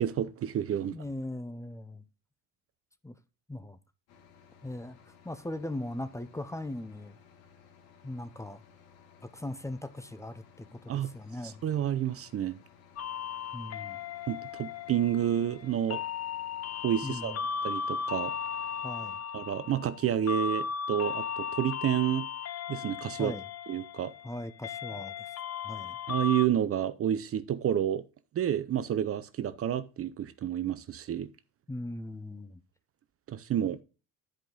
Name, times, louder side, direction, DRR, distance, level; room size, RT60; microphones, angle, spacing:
voice 1, 0.0-1.0 10.9-11.1 11.4-12.6 14.3-16.0 16.8-17.3 17.6-18.3 19.3-22.2 22.7-23.3 23.7-24.1 26.1-28.0 28.3-31.3 33.3-33.8, right 10 dB, 40° right, 0.7 m, -29 dB
voice 2, 0.7-2.0 3.0-3.1 3.5-3.8 4.6-7.2 8.0-8.6 9.3-11.6 13.5-14.0 17.0-17.4 18.8-19.2 23.2-23.4 24.2-25.3 25.6-26.0 31.7-32.6, left 1 dB, 10° left, 0.7 m, -39 dB
sound 1, 4.1-19.2, left 7 dB, 75° left, 2.3 m, -58 dB
sound 2, 13.0-26.5, left 6 dB, 45° left, 0.8 m, -36 dB
10.5 x 5.0 x 3.8 m
supercardioid pair, 90°, 37 cm